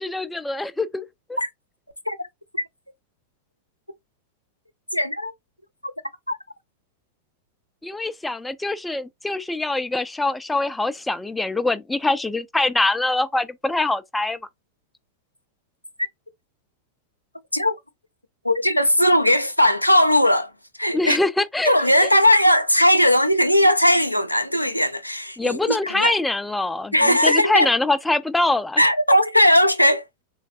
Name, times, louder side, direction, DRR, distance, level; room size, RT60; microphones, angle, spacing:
voice 1, 0.0-1.4 7.8-14.4 20.9-21.7 22.0-22.1 25.4-28.8, left 2 dB, 5° left, 0.4 m, -24 dB
voice 2, 4.9-5.3 6.3-6.4 17.5-17.7 18.4-20.5 20.8-21.2 21.6-26.1 26.9-27.7 28.8-30.0, left 1 dB, 90° left, 0.4 m, -18 dB
3.9 x 3.1 x 2.5 m
figure-of-eight pair, 90°, 0 cm